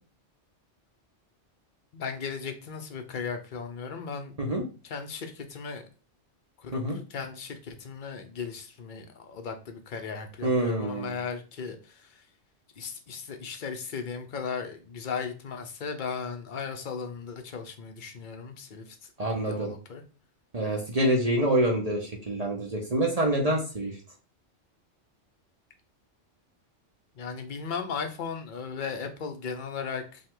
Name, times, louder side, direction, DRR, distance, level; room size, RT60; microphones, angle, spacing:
voice 1, 1.9-4.3 4.8-5.9 6.6-6.8 7.1-12.1 12.8-19.0 19.5-20.0 27.2-30.2, left 5 dB, 50° left, 6 dB, 0.8 m, -36 dB
voice 2, 10.4-11.2 19.2-19.7 20.5-23.9, right 1 dB, 35° right, 0 dB, 0.8 m, -26 dB
5.4 x 2.3 x 3.7 m, 0.36 s
omnidirectional pair, 1.2 m